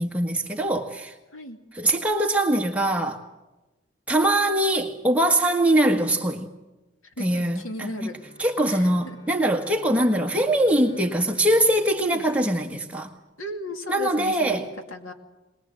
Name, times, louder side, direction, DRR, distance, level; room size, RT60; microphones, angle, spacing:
voice 1, 0.0-1.1 1.7-3.2 4.1-6.5 7.2-8.1 8.4-13.1 13.9-14.7, right 1 dB, 5° right, 1.6 m, -22 dB
voice 2, 7.2-8.2 8.7-9.2 12.0-12.3 13.4-15.1, left 1 dB, 90° left, 2.5 m, -36 dB
Bowed string instrument, 7.9-13.1, left 3 dB, 70° left, 3.9 m, -51 dB
22.5 x 20.5 x 7.6 m
head